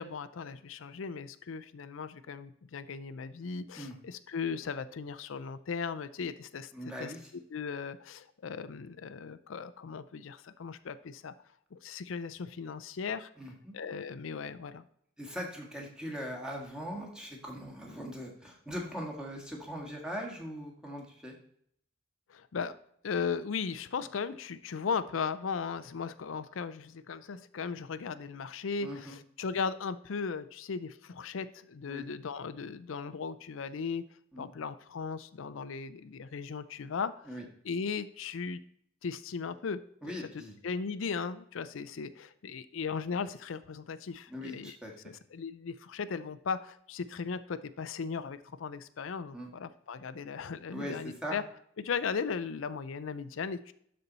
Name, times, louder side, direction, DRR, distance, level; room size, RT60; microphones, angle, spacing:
voice 1, 0.0-6.7 7.0-7.1 7.5-11.3 11.7-13.3 13.7-14.9 22.3-22.7 23.0-34.0 34.4-37.3 37.6-38.6 39.0-39.8 40.1-40.2 40.6-44.8 45.0-51.4 51.8-53.7, left 5 dB, 90° left, 13 dB, 0.5 m, -37 dB
voice 2, 6.7-7.3 13.4-13.7 15.2-21.3 28.8-29.2 31.9-32.0 34.3-34.5 37.3-37.5 40.0-40.5 44.3-44.9 49.3-49.5 50.7-51.4, equal, 5° right, -1 dB, 1.6 m, -40 dB
12.0 x 4.4 x 4.0 m, 0.68 s
head